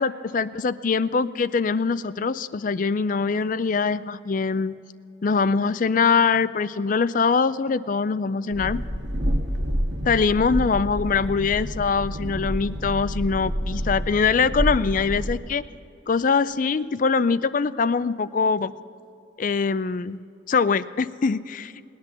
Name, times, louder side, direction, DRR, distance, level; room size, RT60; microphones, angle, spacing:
voice 1, 0.0-4.7 5.2-8.8 10.0-15.6 16.1-18.7 19.4-20.2 20.5-21.7, left 5 dB, 40° left, 16 dB, 0.4 m, -23 dB
Train, 8.5-15.4, equal, 55° right, 1.4 m, -28 dB
19.0 x 10.5 x 6.8 m, 2.6 s
head